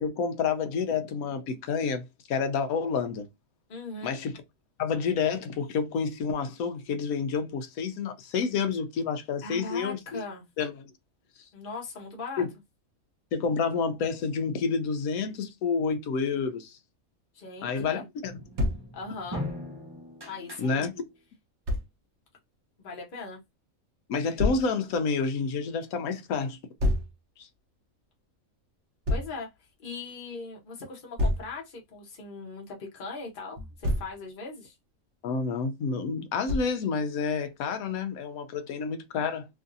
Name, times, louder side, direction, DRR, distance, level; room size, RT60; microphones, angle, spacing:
voice 1, 0.0-3.3 4.0-4.3 4.8-10.2 10.6-10.9 12.4-12.5 13.3-16.8 17.6-18.4 20.6-21.0 24.1-26.6 27.4-27.5 35.2-39.5, left 5 dB, 85° left, 1.1 m, -29 dB
voice 2, 3.7-4.2 9.4-10.5 11.5-12.4 17.3-18.0 18.9-19.5 20.3-20.8 22.8-23.4 29.1-29.5 29.8-34.7, left 3 dB, 40° left, 1.0 m, -39 dB
sound 1, 18.2-21.2, left 1 dB, 20° right, 0.8 m, -40 dB
Thump thud, 18.6-18.9 21.7-21.9 24.4-24.7 26.8-27.1 29.0-29.3 31.2-31.5 33.6-34.1 36.5-36.8, left 1 dB, 60° right, 1.0 m, -27 dB
3.1 x 2.6 x 2.5 m
omnidirectional pair, 1.5 m